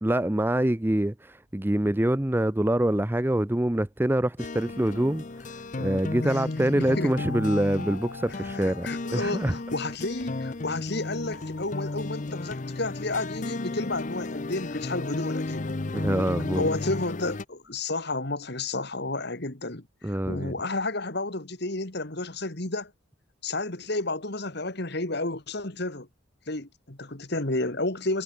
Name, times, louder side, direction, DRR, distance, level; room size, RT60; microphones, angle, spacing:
voice 1, 0.0-9.5 15.9-16.7 20.0-20.5, right 1 dB, 10° right, 0.5 m, -25 dB
sound 1, 4.4-17.5, left 2 dB, 35° left, 0.6 m, -34 dB
voice 2, 6.2-7.1 8.6-15.7 16.5-22.9 23.4-26.1 26.5-28.2, left 2 dB, 50° left, 2.2 m, -31 dB
sound 2, 7.1-9.7 10.9-12.2, left 4 dB, 85° left, 2.8 m, -43 dB
head